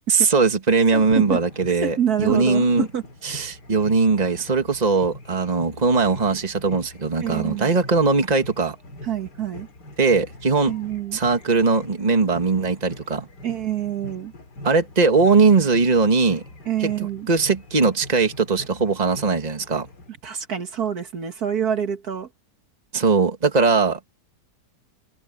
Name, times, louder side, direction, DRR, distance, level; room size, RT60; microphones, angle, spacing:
voice 1, 0.1-2.9 3.2-8.8 10.0-10.7 11.1-13.3 14.6-16.4 16.8-16.9 17.3-19.9 22.9-24.0, right 4 dB, 25° right, 1.8 m, -20 dB
voice 2, 0.9-1.4 1.8-3.0 7.2-7.7 9.0-9.7 10.7-11.2 13.4-14.3 16.7-17.3 20.2-22.3, right 9 dB, 65° right, 2.0 m, -26 dB
sound 1, 1.0-20.1, left 1 dB, 85° left, 3.4 m, -42 dB
omnidirectional pair, 1.8 m